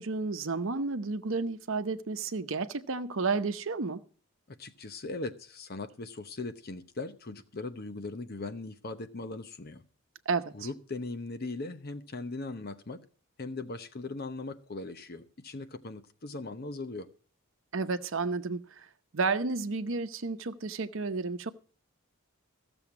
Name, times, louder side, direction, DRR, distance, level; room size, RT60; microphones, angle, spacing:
voice 1, 0.0-4.0 10.3-10.7 17.7-18.9 19.1-21.5, right 4 dB, 65° right, 0.8 m, -31 dB
voice 2, 4.5-9.8 10.5-13.0 13.4-17.1, left 3 dB, 50° left, 0.9 m, -39 dB
15.0 x 7.1 x 5.9 m
head